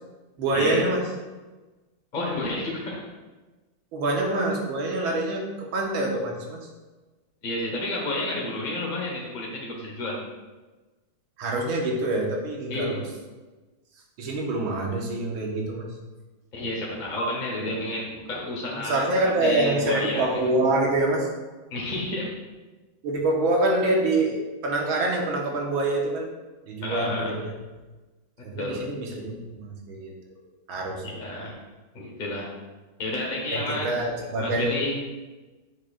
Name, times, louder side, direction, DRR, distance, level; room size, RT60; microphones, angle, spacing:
voice 1, 0.4-1.0 3.9-6.6 11.4-13.0 14.2-15.9 18.7-21.3 23.0-24.4 24.6-26.3 26.7-27.5 28.4-30.1 30.7-31.2 33.5-34.7, right 2 dB, 75° right, 0 dB, 1.9 m, -25 dB
voice 2, 2.1-3.0 7.4-10.2 12.7-13.0 16.5-19.1 19.4-20.3 21.7-22.4 26.8-27.4 28.4-28.8 31.0-31.6 31.9-32.5 33.0-34.1 34.4-35.0, left 1 dB, 35° left, -3 dB, 0.8 m, -30 dB
8.4 x 6.4 x 2.4 m, 1.2 s
omnidirectional pair, 2.2 m